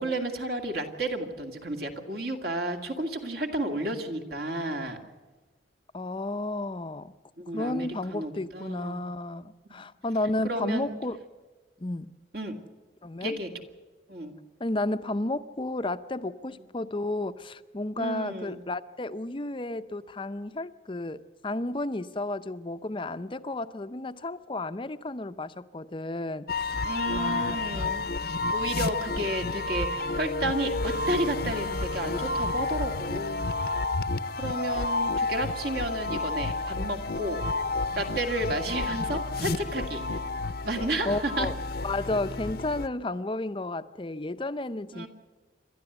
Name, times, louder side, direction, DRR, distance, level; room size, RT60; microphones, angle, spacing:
voice 1, 0.0-5.0 7.4-9.0 10.4-11.0 12.3-12.6 13.2-13.5 14.1-14.3 18.0-18.6 26.8-28.1 28.5-33.8 34.4-37.5 38.0-40.0 40.6-41.5 44.9-45.1, right 1 dB, 55° right, 4 dB, 2.3 m, -32 dB
voice 2, 5.9-7.1 7.5-11.2 11.8-12.1 13.0-13.4 14.6-26.8 27.1-28.0 29.2-29.3 41.1-41.5 41.8-45.1, left 2 dB, 30° left, 12 dB, 0.6 m, -32 dB
sound 1, 26.5-42.9, left 3 dB, 55° left, 0.8 m, -30 dB
28.5 x 12.5 x 8.0 m, 1.4 s
head